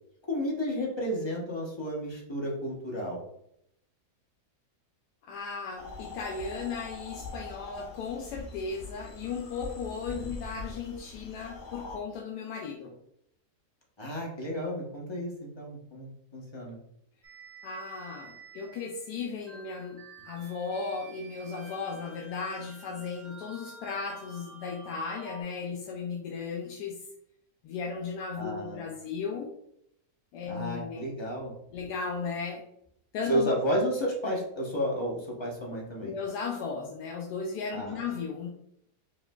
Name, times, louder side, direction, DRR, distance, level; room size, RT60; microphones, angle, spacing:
voice 1, 0.3-3.2 10.2-10.3 14.0-16.8 28.3-28.9 30.5-31.5 33.3-36.1 37.7-38.0, equal, 25° left, -3 dB, 0.6 m, -32 dB
voice 2, 5.2-12.9 17.6-20.0 20.2-27.0 27.6-29.5 30.3-31.1 31.7-32.6 33.1-33.5 36.0-38.5, left 5 dB, 80° left, 1 dB, 1.1 m, -36 dB
sound 1, 5.8-12.0, left 3 dB, 55° left, 1.0 m, -43 dB
sound 2, 17.2-25.4, right 3 dB, 65° right, 1.3 m, -50 dB
5.1 x 3.1 x 2.3 m, 0.75 s
omnidirectional pair, 1.7 m